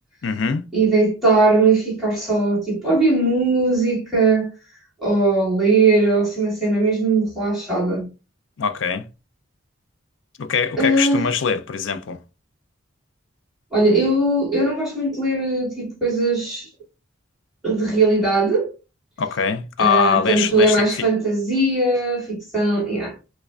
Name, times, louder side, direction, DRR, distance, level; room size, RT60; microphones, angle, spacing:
voice 1, 0.2-0.7 8.6-9.1 10.4-12.2 19.2-20.8, left 6 dB, 65° left, 0.4 m, -22 dB
voice 2, 0.7-4.5 5.0-8.1 10.8-11.3 13.7-16.7 17.6-18.7 19.8-23.1, right 2 dB, ahead, 2.0 m, -19 dB
4.7 x 2.2 x 2.3 m
head